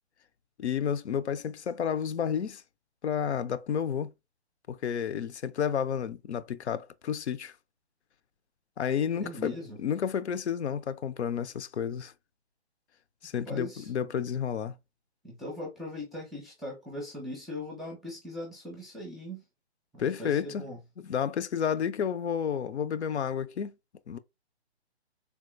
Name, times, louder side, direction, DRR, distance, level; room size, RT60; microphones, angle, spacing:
voice 1, 0.6-2.6 3.0-4.1 4.7-7.5 8.8-12.1 13.2-14.8 20.0-20.6 21.0-23.7 24.1-24.2, left 8 dB, 85° left, 0.5 m, -31 dB
voice 2, 9.2-9.8 13.5-13.9 15.2-19.4 19.9-20.8, left 1 dB, ahead, 0.3 m, -40 dB
3.5 x 2.3 x 2.5 m
hypercardioid pair, 170°, 33 cm